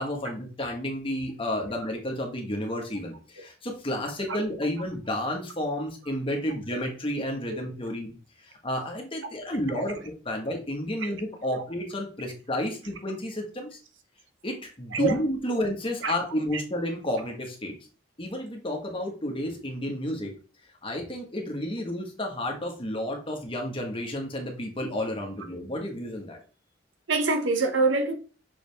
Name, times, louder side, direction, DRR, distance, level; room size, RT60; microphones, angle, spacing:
voice 1, 0.0-8.1 8.4-13.8 14.4-17.7 18.2-20.3 20.8-26.4, left 1 dB, 30° left, 1.5 m, -31 dB
voice 2, 9.7-10.1 11.0-11.1 11.5-11.6 12.2-12.3 14.9-15.2 15.5-15.6 16.0-16.1 16.5-16.6 27.1-28.1, right 3 dB, 75° right, 1.0 m, -26 dB
6.3 x 4.9 x 3.5 m
head